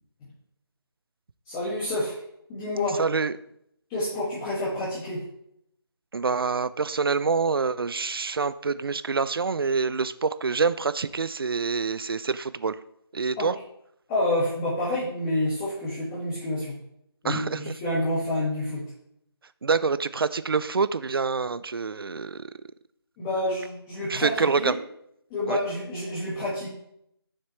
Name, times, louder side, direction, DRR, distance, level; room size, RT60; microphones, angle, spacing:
voice 1, 1.4-2.2 2.5-3.0 3.9-5.2 13.4-13.5 14.1-16.7 17.2-18.8 23.2-24.8 25.3-26.7, left 1 dB, 10° left, -10 dB, 1.4 m, -28 dB
voice 2, 3.0-3.3 6.1-12.8 13.1-13.5 17.2-17.7 19.6-22.5 24.1-24.8 25.5-25.6, right 4 dB, 65° right, 15 dB, 0.5 m, -26 dB
7.3 x 6.6 x 3.0 m, 0.74 s
figure-of-eight pair, 165°, 13 cm